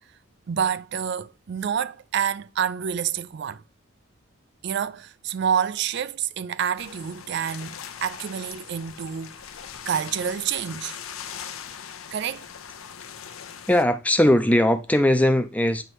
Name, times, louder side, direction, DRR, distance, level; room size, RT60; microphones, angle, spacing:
voice 1, 0.5-3.6 4.6-9.4 9.9-11.0 12.1-12.5, right 8 dB, 55° right, 0.4 m, -28 dB
sound 1, 6.8-13.8, left 8 dB, 85° left, 0.7 m, -40 dB
voice 2, 13.7-15.8, left 1 dB, 5° left, 0.5 m, -19 dB
7.9 x 3.0 x 4.3 m
head